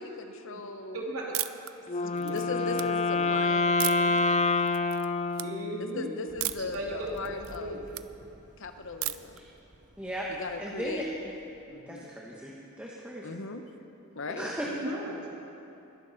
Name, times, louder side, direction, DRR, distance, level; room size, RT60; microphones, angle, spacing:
voice 1, 0.0-1.0 2.0-4.7 5.9-7.8 8.6-9.4 10.3-11.0 11.7-12.1 13.2-13.7 14.1-14.5, left 3 dB, 60° left, 7 dB, 0.9 m, -38 dB
voice 2, 0.9-1.3 2.1-2.4 2.7-2.8 3.1-3.3 5.4-6.1 6.6-7.8 14.8-15.2, right 1 dB, 85° right, -2 dB, 2.4 m, -36 dB
sound 1, 1.3-1.7 2.2-2.8 3.8-4.2 4.7-5.1 5.3-5.5 6.4-6.8 7.1-8.0 9.0-9.4, right 17 dB, 70° right, 0.4 m, -34 dB
Wind instrument woodwind instrument, 1.9-6.1, left 3 dB, 30° left, 0.5 m, -27 dB
sound 2, 6.3-11.7, right 1 dB, 40° right, 1.6 m, -53 dB
voice 3, 10.0-10.3 10.6-11.0 11.9-13.4 14.3-14.7, equal, 5° right, -5 dB, 1.2 m, -37 dB
21.0 x 12.5 x 4.1 m, 2.8 s
head